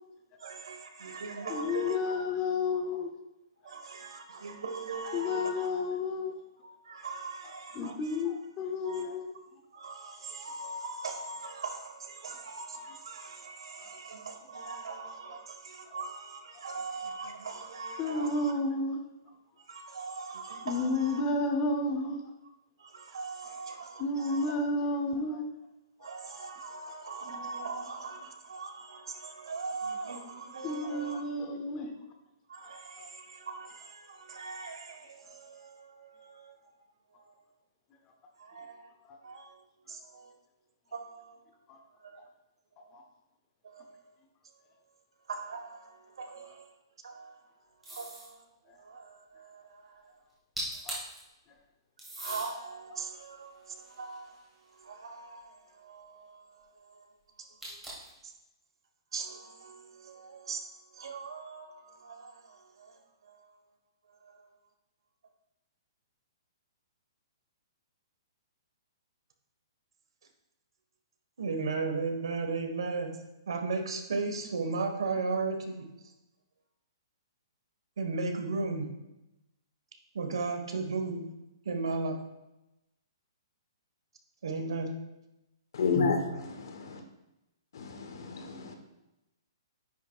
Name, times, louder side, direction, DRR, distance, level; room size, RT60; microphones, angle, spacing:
voice 1, 0.4-2.3 3.6-5.8 6.6-8.2 8.8-9.0 9.7-18.5 19.7-21.2 22.8-24.6 26.0-31.2 32.5-36.7 37.2-37.4 38.4-38.9 39.2-40.4 40.9-41.4 42.0-42.3 42.8-42.9 43.6-44.0 45.3-46.7 47.0-47.4 47.9-50.1 52.2-57.1 58.2-58.3 59.1-60.7 60.9-63.5 64.1-64.5 71.4-75.8 78.0-78.9 80.1-81.3 81.6-82.2 84.4-84.9, right 4 dB, 80° right, 1.4 m, -38 dB
voice 2, 1.4-3.1 5.1-6.3 7.8-9.3 18.0-19.0 20.6-22.2 24.0-25.4 30.6-31.9 33.0-33.1 39.1-39.2 41.7-41.8 42.9-43.0 50.9-51.0, left 2 dB, 15° left, 0.6 m, -31 dB
sound 1, 47.8-48.3 50.3-50.4 50.6-51.2 52.0-52.5 53.2-54.7 57.6-58.2, right 1 dB, 5° right, 1.5 m, -41 dB
voice 3, 85.7-86.2 86.8-87.0 87.7-88.7, left 5 dB, 55° left, 1.1 m, -30 dB
9.7 x 5.9 x 2.4 m
hypercardioid pair, 180°, 3 cm